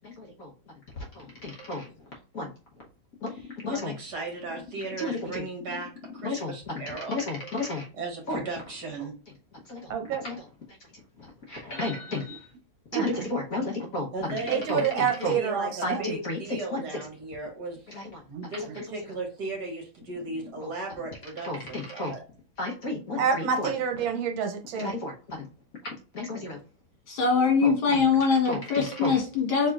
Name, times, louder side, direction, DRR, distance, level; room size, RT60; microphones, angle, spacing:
voice 1, 0.0-0.5 1.2-1.8 2.3-2.5 3.6-3.9 5.0-5.4 6.2-6.7 7.1-7.8 8.3-8.4 10.2-10.3 11.5-12.4 12.9-14.1 14.7-14.8 15.2-15.3 15.8-15.9 16.2-16.4 16.7-16.8 21.4-22.1 22.6-23.2 24.8-25.4 26.1-26.6 27.6-27.7 28.4-29.1, left 2 dB, 50° left, -1 dB, 1.2 m, -32 dB
voice 2, 3.3-7.2 7.9-9.1 14.1-15.1 15.3-17.8 18.5-22.2 23.6-23.7, right 3 dB, 55° right, 1 dB, 1.9 m, -36 dB
voice 3, 9.9-10.2 12.3-12.4 12.9-13.3 14.5-16.0 18.3-18.5 23.2-25.0, right 7 dB, 75° right, 5 dB, 1.6 m, -28 dB
voice 4, 27.1-29.7, left 5 dB, 80° left, 0 dB, 2.7 m, -23 dB
4.8 x 4.3 x 2.4 m, 0.36 s
omnidirectional pair, 2.2 m